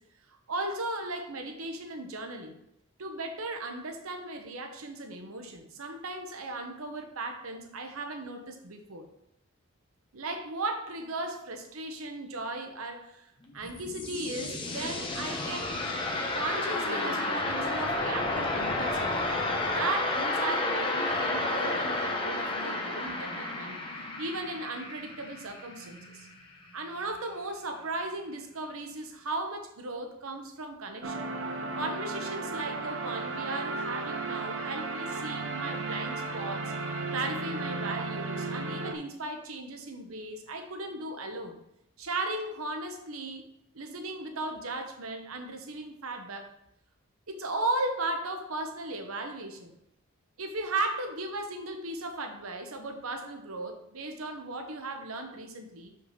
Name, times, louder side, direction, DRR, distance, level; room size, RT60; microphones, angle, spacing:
voice 1, 0.3-2.6 3.0-9.1 10.1-13.3 13.5-15.8 16.3-19.3 19.7-23.8 24.2-26.3 26.7-31.2 31.8-36.7 37.1-41.6 42.0-46.5 47.3-49.7 50.4-55.9, right 2 dB, 80° right, 5 dB, 1.0 m, -36 dB
sound 1, 13.4-26.3, left 2 dB, 25° left, 1.0 m, -31 dB
sound 2, 31.0-38.9, right 3 dB, 60° right, 0.8 m, -34 dB
6.0 x 5.7 x 5.0 m, 0.79 s
head